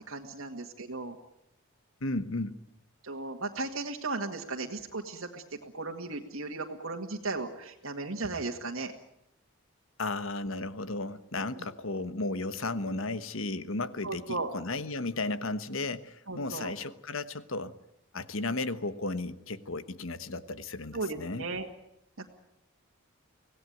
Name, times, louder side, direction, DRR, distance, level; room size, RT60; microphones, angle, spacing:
voice 1, 0.1-1.2 3.0-8.9 11.5-11.7 14.0-14.5 16.3-16.7 20.9-21.7 22.2-22.3, right 3 dB, 75° right, 1 dB, 1.9 m, -36 dB
voice 2, 2.0-2.6 10.0-17.7 18.1-21.4, left 2 dB, 70° left, 13 dB, 1.2 m, -34 dB
25.0 x 17.5 x 9.4 m, 0.80 s
head